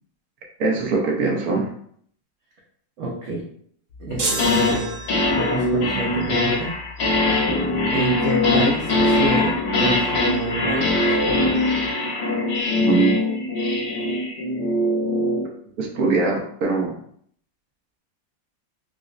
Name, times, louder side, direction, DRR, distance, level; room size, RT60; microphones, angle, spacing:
voice 1, 0.6-1.7 12.8-13.1 15.8-17.0, right 3 dB, 65° right, 0 dB, 1.0 m, -22 dB
voice 2, 3.0-3.4 4.0-4.9 5.4-6.8 7.9-9.5 9.8-11.2, right 2 dB, 80° right, -4 dB, 0.6 m, -28 dB
sound 1, 4.1-4.8 5.1-15.5, left 2 dB, 65° left, 1.2 m, -21 dB
sound 2, 4.2-5.7, right 3 dB, 40° right, 0.8 m, -28 dB
4.9 x 2.0 x 2.4 m, 0.64 s
omnidirectional pair, 2.1 m